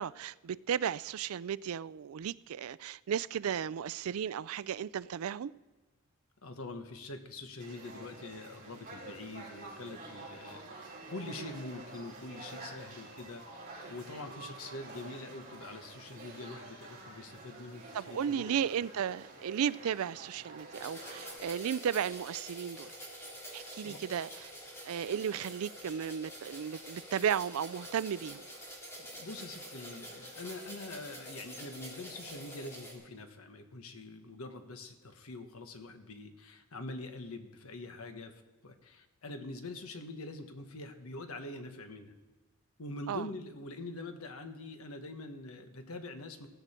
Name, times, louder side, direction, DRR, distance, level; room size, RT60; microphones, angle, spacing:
voice 1, 0.0-5.5 11.4-11.5 17.9-22.9 23.5-24.5 24.8-28.4 43.1-43.3, right 8 dB, 75° right, 0.4 m, -34 dB
voice 2, 6.4-18.6 23.8-24.0 29.0-42.1 42.8-46.5, left 2 dB, 75° left, 1.3 m, -45 dB
sound 1, 7.6-21.4, right 2 dB, 40° right, 5.3 m, -49 dB
sound 2, 20.7-32.9, equal, 10° left, 3.5 m, -47 dB
16.0 x 15.0 x 4.4 m
head